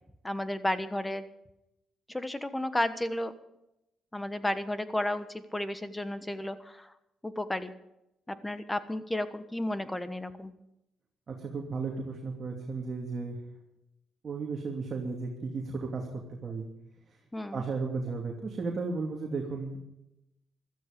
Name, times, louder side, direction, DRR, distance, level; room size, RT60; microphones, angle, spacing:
voice 1, 0.2-1.2 2.1-3.3 4.1-6.9 7.2-7.7 8.3-10.5 17.3-17.6, left 1 dB, 10° left, 12 dB, 1.3 m, -33 dB
voice 2, 11.3-13.4 14.2-16.7 17.5-19.8, right 4 dB, 40° right, 0 dB, 2.7 m, -34 dB
15.5 x 13.5 x 5.3 m, 0.86 s
cardioid pair, 90°, 0 cm